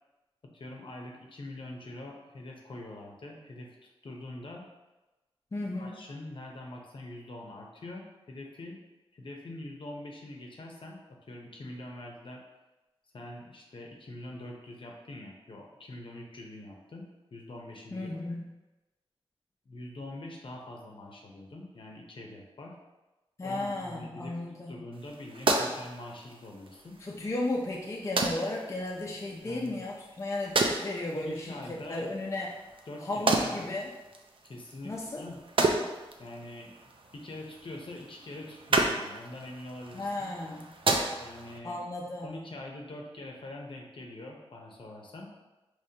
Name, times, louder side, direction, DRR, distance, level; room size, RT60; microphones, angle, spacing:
voice 1, 0.5-4.6 5.8-8.8 9.1-12.4 13.1-17.0 17.3-18.1 19.7-22.8 23.4-24.4 24.7-27.0 29.4-29.8 31.1-32.1 32.9-33.7 34.4-35.4 36.2-36.7 37.1-40.3 41.2-41.8 42.2-45.3, left 1 dB, 60° left, 0 dB, 0.8 m, -44 dB
voice 2, 5.5-6.0 17.9-18.5 23.4-24.7 27.0-32.5 33.0-33.9 34.8-35.2 39.9-40.7 41.6-42.4, left 2 dB, 30° left, -2 dB, 0.5 m, -35 dB
sound 1, 24.9-41.6, right 2 dB, 60° right, 0.5 m, -33 dB
5.0 x 3.1 x 2.8 m, 1.1 s
wide cardioid pair, 90°, 10 cm